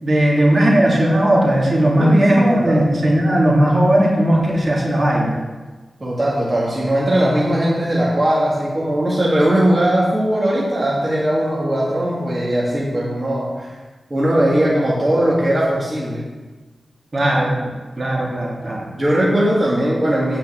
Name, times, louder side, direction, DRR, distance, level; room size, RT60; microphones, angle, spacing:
voice 1, 0.0-5.3 17.1-17.5 18.0-18.9, right 1 dB, 45° right, -3 dB, 2.7 m, -16 dB
voice 2, 2.0-2.9 6.0-13.7 14.1-16.3 18.9-20.4, right 1 dB, 30° right, -6 dB, 2.3 m, -19 dB
8.8 x 5.9 x 7.6 m, 1.3 s
cardioid pair, 65°, 0 cm